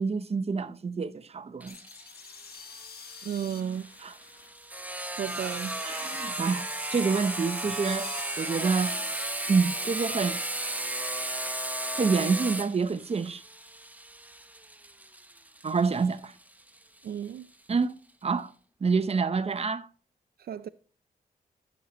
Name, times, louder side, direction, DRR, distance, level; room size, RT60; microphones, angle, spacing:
voice 1, 0.0-1.8 4.0-4.1 5.8-8.1 8.4-8.9 9.5-10.4 12.0-13.4 15.6-16.3 17.7-17.9 18.2-18.5 18.8-19.9, right 5 dB, 40° right, 0.8 m, -27 dB
Sawing, 1.6-17.0, right 1 dB, 10° right, 0.8 m, -35 dB
sound 1, 1.7-11.6, left 6 dB, 75° left, 1.2 m, -48 dB
voice 2, 3.2-3.9 5.2-5.8 17.0-17.5 20.4-20.7, right 9 dB, 75° right, 0.5 m, -33 dB
13.0 x 7.4 x 3.1 m
cardioid pair, 75°, 16 cm